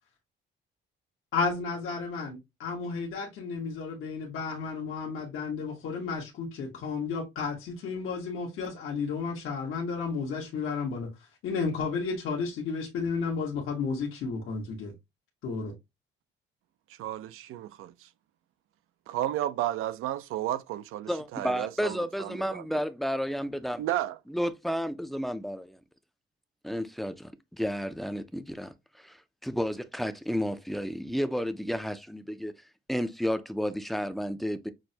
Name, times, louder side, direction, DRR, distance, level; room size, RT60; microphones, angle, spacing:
voice 1, 1.3-11.1 11.4-14.9 15.4-15.7, left 5 dB, 80° left, 1.2 m, -32 dB
voice 2, 17.0-18.1 19.1-22.7 23.8-24.2, right 13 dB, 90° right, 0.4 m, -33 dB
voice 3, 21.1-23.8 24.3-25.7 26.6-27.3 27.6-28.7 29.4-32.5 32.9-34.7, equal, ahead, 0.3 m, -31 dB
6.2 x 2.1 x 2.7 m
cardioid pair, 135°, 21 cm